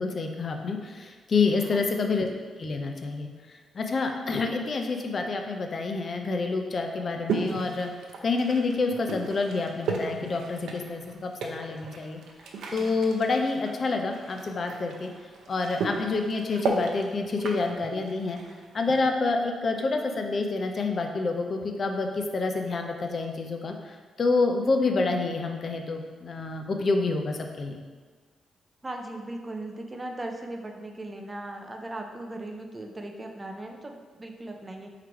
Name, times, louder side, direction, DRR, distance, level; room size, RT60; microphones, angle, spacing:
voice 1, 0.0-2.3 2.6-7.9 8.2-12.2 12.7-15.1 15.5-18.4 18.7-27.8, left 3 dB, 40° left, 4 dB, 0.5 m, -28 dB
sound 1, 7.3-19.0, right 4 dB, 85° right, 0.5 m, -35 dB
voice 2, 28.8-34.9, right 1 dB, 20° right, 3 dB, 0.5 m, -38 dB
3.8 x 3.1 x 4.5 m, 1.4 s
cardioid pair, 125°, 0 cm